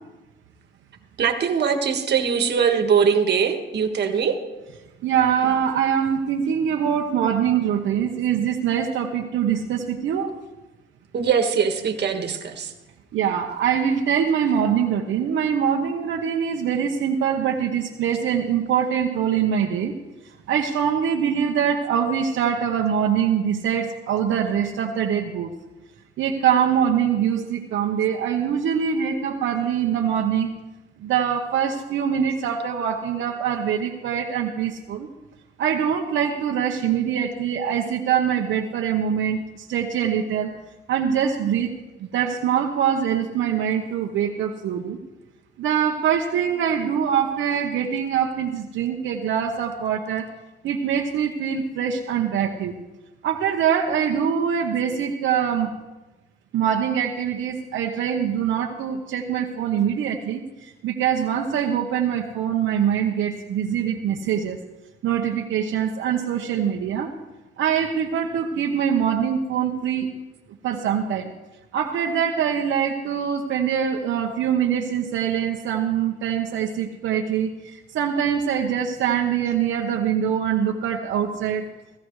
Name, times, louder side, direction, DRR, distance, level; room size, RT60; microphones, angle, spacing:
voice 1, 1.2-4.4 11.1-12.7 14.5-14.6, right 6 dB, 60° right, 5 dB, 1.6 m, -21 dB
voice 2, 5.0-10.4 13.1-19.9 20.2-25.5 26.2-30.5 31.0-35.1 35.6-40.5 40.9-41.7 42.0-45.0 45.6-50.3 50.6-52.7 53.2-55.7 56.5-64.6 65.0-67.1 67.6-70.1 70.6-71.3 71.7-81.7, right 8 dB, 75° right, 0 dB, 1.1 m, -23 dB
17.0 x 15.0 x 3.2 m, 1.1 s
cardioid pair, 90°, 20 cm